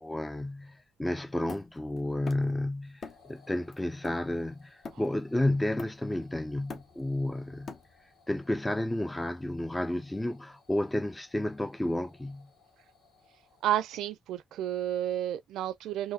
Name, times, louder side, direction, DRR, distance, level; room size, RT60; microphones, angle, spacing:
voice 1, 0.0-7.7 8.3-12.5, left 1 dB, 10° left, 0.3 m, -31 dB
Hammer, 1.5-2.6 3.0-3.4 3.7-5.3 5.8-6.2 6.5-8.2, left 4 dB, 50° left, 0.8 m, -45 dB
sound 1, 3.0-14.1, left 5 dB, 80° left, 1.6 m, -64 dB
voice 2, 13.6-16.1, right 11 dB, 85° right, 0.4 m, -31 dB
4.0 x 2.6 x 2.6 m
cardioid pair, 90°, 0 cm